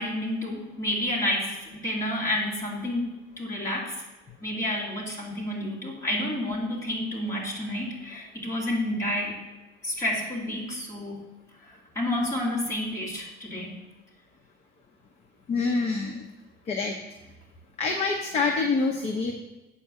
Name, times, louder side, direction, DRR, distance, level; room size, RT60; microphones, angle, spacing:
voice 1, 0.0-4.0 4.4-9.3 9.8-11.2 11.6-13.7, left 1 dB, 15° left, -4 dB, 2.5 m, -30 dB
voice 2, 15.5-16.2 16.7-16.9 17.8-19.3, left 4 dB, 30° left, 2 dB, 0.8 m, -26 dB
8.5 x 4.6 x 7.4 m, 1.1 s
cardioid pair, 175°, 20 cm